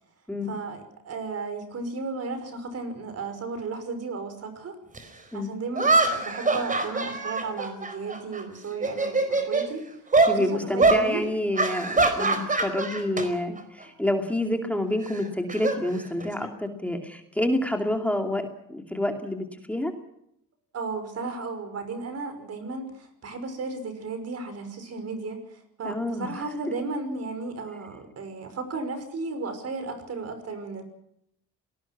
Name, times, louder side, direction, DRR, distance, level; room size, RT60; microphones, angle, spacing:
voice 1, 0.4-4.8 5.3-9.8 10.2-11.2 20.7-30.8, right 3 dB, 50° right, 9 dB, 5.7 m, -34 dB
sound 1, 4.9-5.0 5.8-8.4 8.7-9.7 10.1-10.4 10.8-11.0 11.6-13.3 13.6-13.8 15.0-16.5, right 3 dB, 25° right, 4.5 m, -24 dB
voice 2, 10.3-19.9 25.8-26.3, left 1 dB, 5° left, 3 dB, 2.6 m, -28 dB
27.5 x 19.0 x 6.1 m, 0.76 s
cardioid pair, 115°, 32 cm